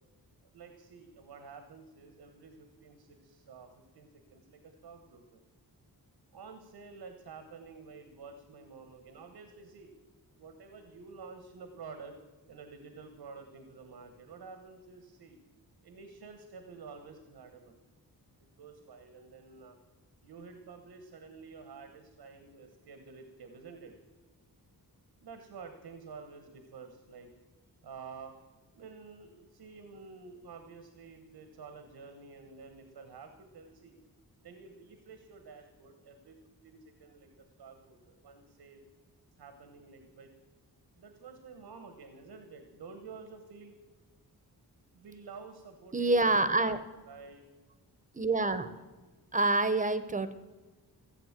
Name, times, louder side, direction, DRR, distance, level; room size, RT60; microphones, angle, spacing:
voice 1, 0.4-3.7 3.9-5.4 6.3-9.9 10.4-12.2 12.5-15.4 15.8-17.8 18.4-19.8 20.2-23.9 25.2-27.3 27.8-28.3 28.7-33.9 34.4-36.4 36.6-38.8 39.4-40.3 41.0-43.8 44.9-46.7 47.1-47.4, right 5 dB, 90° right, 7 dB, 1.4 m, -50 dB
voice 2, 45.9-46.8 48.1-48.7 49.3-50.3, right 2 dB, 20° right, 13 dB, 0.8 m, -27 dB
15.5 x 8.0 x 7.4 m, 1.3 s
wide cardioid pair, 140°, 38 cm